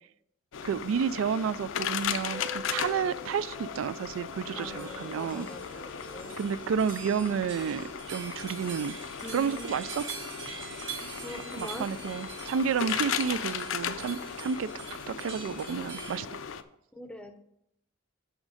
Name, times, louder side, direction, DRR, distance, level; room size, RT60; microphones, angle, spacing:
sound 1, 0.5-16.6, left 8 dB, 75° left, 0.5 m, -37 dB
voice 1, 0.6-5.5 6.4-9.0 9.3-10.0 11.6-14.7 15.1-16.4, right 7 dB, 85° right, 18 dB, 0.3 m, -31 dB
sound 2, 2.3-7.9, left 2 dB, 50° right, 2.4 m, -47 dB
voice 2, 4.5-5.6 6.1-6.3 9.2-9.8 11.0-11.9 17.0-17.4, left 1 dB, 5° left, 6 dB, 0.6 m, -43 dB
sound 3, 4.6-16.2, right 5 dB, 65° right, 1.7 m, -44 dB
6.4 x 6.2 x 4.9 m, 0.77 s
head